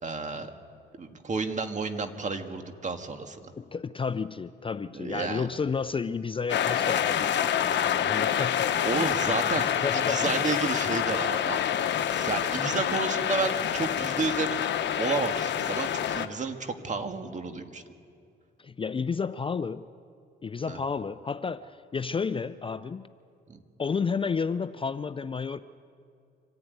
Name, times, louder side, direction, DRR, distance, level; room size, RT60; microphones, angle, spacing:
voice 1, 0.0-0.5 1.0-3.5 4.9-5.5 8.8-9.7 9.9-11.6 12.1-17.8 20.7-20.8 23.5-23.6, right 4 dB, 35° right, 6 dB, 1.8 m, -31 dB
voice 2, 3.6-7.3 7.6-10.2 18.6-19.8 20.4-23.0 23.8-25.6, left 5 dB, 25° left, 13 dB, 0.5 m, -32 dB
sound 1, 6.5-16.3, left 9 dB, 65° left, 1.1 m, -27 dB
25.5 x 14.0 x 9.5 m, 2.4 s
cardioid pair, 90°, 20 cm